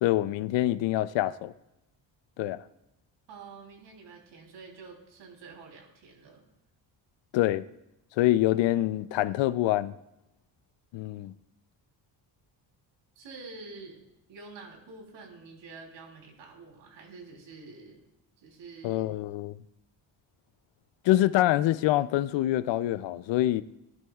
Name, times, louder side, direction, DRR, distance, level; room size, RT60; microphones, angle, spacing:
voice 1, 0.0-1.5 2.4-2.6 7.3-7.6 8.2-9.9 10.9-11.3 18.8-19.6 21.0-23.6, left 15 dB, 75° left, 0.6 m, -25 dB
voice 2, 3.3-6.4 13.2-14.0 14.3-18.0 18.4-19.0, right 4 dB, 80° right, 3.5 m, -47 dB
18.5 x 11.0 x 2.4 m
cardioid pair, 115°, 44 cm